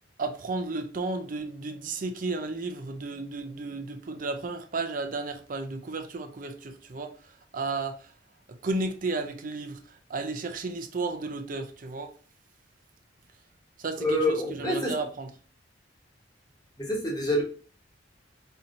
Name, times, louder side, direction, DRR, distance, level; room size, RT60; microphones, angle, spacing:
voice 1, 0.2-8.1 8.5-12.1 13.8-15.3, right 3 dB, 45° right, 0.5 m, -33 dB
voice 2, 14.0-14.9 16.8-17.4, left 1 dB, 20° left, 1.2 m, -26 dB
4.3 x 2.8 x 2.6 m
head